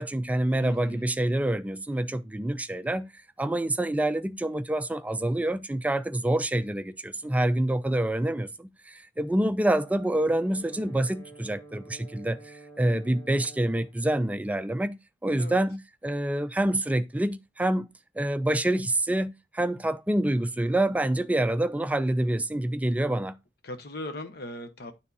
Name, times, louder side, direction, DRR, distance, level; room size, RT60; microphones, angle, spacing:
voice 1, 0.0-3.1 3.4-17.9 18.2-23.4, right 1 dB, 10° right, 0.4 m, -27 dB
voice 2, 0.6-1.1 15.4-15.6 23.6-24.9, left 1 dB, 60° left, 1.0 m, -38 dB
Brass instrument, 9.8-14.0, right 3 dB, 15° left, 1.6 m, -49 dB
9.4 x 3.5 x 4.1 m
head